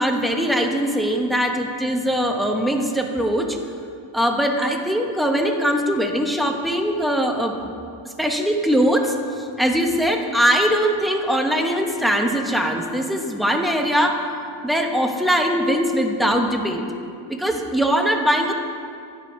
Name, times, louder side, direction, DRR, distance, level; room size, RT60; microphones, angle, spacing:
voice 1, 0.0-3.6 4.1-7.5 8.2-14.2 14.6-16.9 17.3-18.5, equal, ahead, 3 dB, 0.5 m, -21 dB
10.0 x 5.1 x 2.5 m, 2.4 s
cardioid pair, 90°, 49 cm